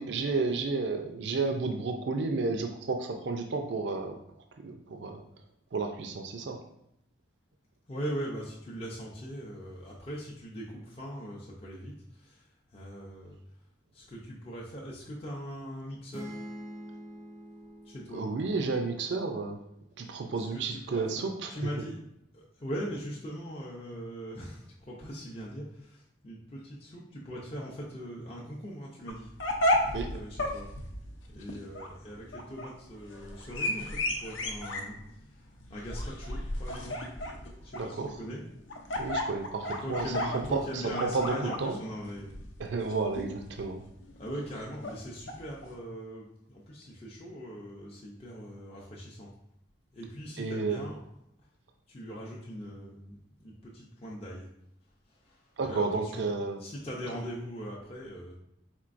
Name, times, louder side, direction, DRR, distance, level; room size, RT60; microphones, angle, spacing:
voice 1, 0.0-4.2 4.6-5.2 5.7-6.6 18.1-19.6 20.0-21.5 29.9-30.1 37.7-38.1 39.0-40.1 40.5-41.8 42.6-43.8 50.4-50.8 55.6-56.6, right 4 dB, 65° right, 4 dB, 0.4 m, -31 dB
voice 2, 7.9-13.4 13.9-16.4 17.8-18.3 20.0-22.0 22.3-29.3 30.1-30.7 31.3-37.1 37.6-38.4 39.6-42.4 44.2-49.3 49.9-51.0 51.9-54.5 55.1-56.3 56.6-58.4, equal, 30° left, -4 dB, 0.6 m, -41 dB
sound 1, 16.1-19.9, equal, 15° right, 0.5 m, -46 dB
sound 2, 29.1-45.7, left 1 dB, 80° left, 0.7 m, -34 dB
4.4 x 3.9 x 2.5 m, 0.78 s
head